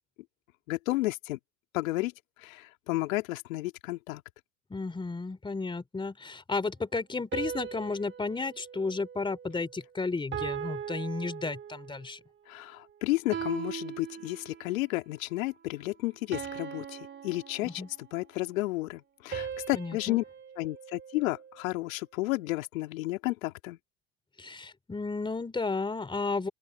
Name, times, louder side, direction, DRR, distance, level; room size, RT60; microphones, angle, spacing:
voice 1, 0.7-1.4 1.7-2.1 2.4-4.2 12.5-17.8 18.1-20.2 20.6-23.8, left 19 dB, 70° left, 3.0 m, -32 dB
voice 2, 4.7-12.2 17.6-17.9 19.7-20.2 24.4-26.5, left 3 dB, 10° left, 3.5 m, -33 dB
sound 1, 7.3-9.8 10.3-12.1 13.3-14.8 16.3-18.2 19.3-21.7, right 8 dB, 25° right, 2.4 m, -40 dB
open air
hypercardioid pair, 105°, 42 cm